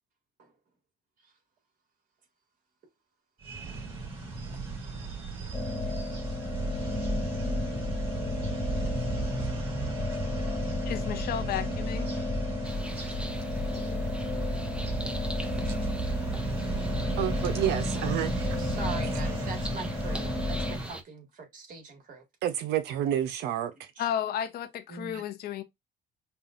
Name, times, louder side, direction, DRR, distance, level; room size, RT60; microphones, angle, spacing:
sound 1, 3.4-20.9, right 3 dB, 30° right, 2.5 m, -35 dB
sound 2, 5.5-20.8, left 2 dB, 30° left, 1.2 m, -32 dB
voice 1, 9.4-10.1 17.9-18.1 18.6-22.2 24.0-24.1 24.9-25.2, right 4 dB, 55° right, 1.9 m, -42 dB
voice 2, 10.8-12.1 24.0-25.6, left 10 dB, 65° left, 0.8 m, -33 dB
sound 3, 12.6-21.0, right 1 dB, 5° right, 0.7 m, -43 dB
voice 3, 17.2-18.5 22.4-23.9, right 11 dB, 85° right, 0.6 m, -29 dB
5.4 x 2.4 x 2.5 m
cardioid pair, 110°, 17 cm